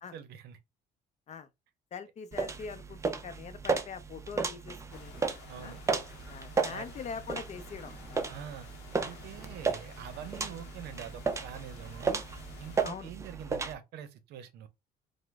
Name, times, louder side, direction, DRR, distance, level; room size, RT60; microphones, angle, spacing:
voice 1, 0.1-0.6 5.5-5.8 6.7-6.9 8.3-8.7 9.0-12.2 12.6-14.7, right 9 dB, 75° right, 0.6 m, -45 dB
voice 2, 1.9-5.1 5.6-5.8 6.3-8.2 9.1-9.2 12.8-13.1, left 6 dB, 40° left, 0.5 m, -43 dB
sound 1, 2.3-13.7, right 4 dB, 15° right, 0.4 m, -34 dB
sound 2, 4.9-12.9, left 6 dB, 85° left, 0.7 m, -52 dB
3.0 x 2.0 x 3.4 m
cardioid pair, 110°, 17 cm